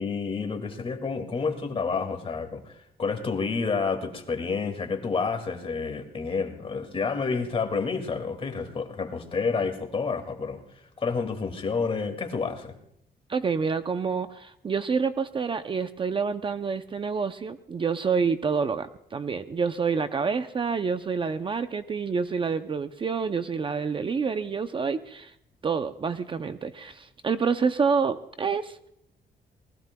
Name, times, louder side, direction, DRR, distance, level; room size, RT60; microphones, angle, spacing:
voice 1, 0.0-10.6 11.0-12.8, left 4 dB, 35° left, 6 dB, 2.2 m, -29 dB
voice 2, 13.3-25.3 25.6-28.9, right 5 dB, 30° right, 10 dB, 0.6 m, -28 dB
27.5 x 20.0 x 2.3 m, 0.77 s
cardioid pair, 140°, 16 cm